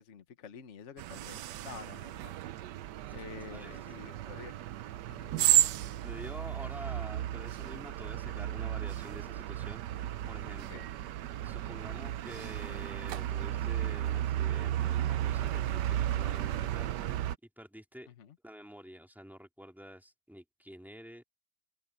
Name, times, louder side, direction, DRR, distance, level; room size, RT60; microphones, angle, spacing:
voice 1, 0.0-2.3 2.6-4.6 5.0-5.6 10.7-10.9 18.1-18.4, left 7 dB, 50° left, 1.4 m, -49 dB
sound 1, 1.0-17.3, right 13 dB, 85° right, 1.3 m, -33 dB
voice 2, 6.0-10.8 11.4-16.9 17.6-18.1 18.4-21.2, equal, ahead, 2.6 m, -48 dB
open air
omnidirectional pair, 1.8 m